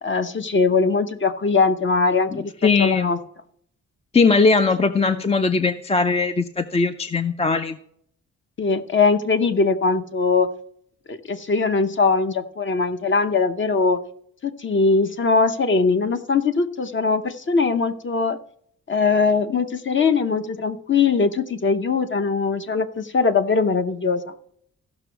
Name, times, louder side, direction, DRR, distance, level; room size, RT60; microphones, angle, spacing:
voice 1, 0.0-2.5 2.8-3.2 5.1-5.2 8.6-10.5 11.1-14.0 14.4-18.4 18.9-24.2, left 4 dB, 40° left, 9 dB, 0.9 m, -21 dB
voice 2, 2.6-3.1 4.1-7.8, left 4 dB, 20° left, 10 dB, 0.4 m, -19 dB
15.0 x 6.1 x 4.6 m, 0.67 s
wide cardioid pair, 140°, 31 cm